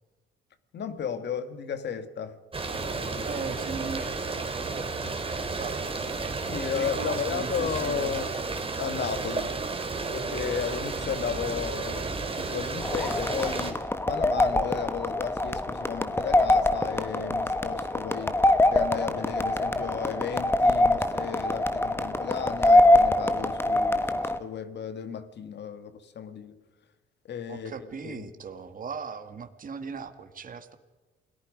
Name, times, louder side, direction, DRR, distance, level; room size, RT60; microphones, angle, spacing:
voice 1, 0.7-2.4 2.9-3.5 5.0-5.2 6.5-8.3 8.8-9.6 10.1-18.4 18.7-26.6 27.2-27.7 28.0-28.3, left 7 dB, 60° left, 1.9 m, -34 dB
sound 1, 2.5-13.7, right 3 dB, 30° right, 3.0 m, -32 dB
voice 2, 3.2-6.4 6.7-8.3 27.5-30.8, right 5 dB, 45° right, 1.9 m, -39 dB
sound 2, 12.8-24.4, left 1 dB, 10° left, 1.4 m, -24 dB
29.0 x 18.5 x 5.2 m
cardioid pair, 90°, 20 cm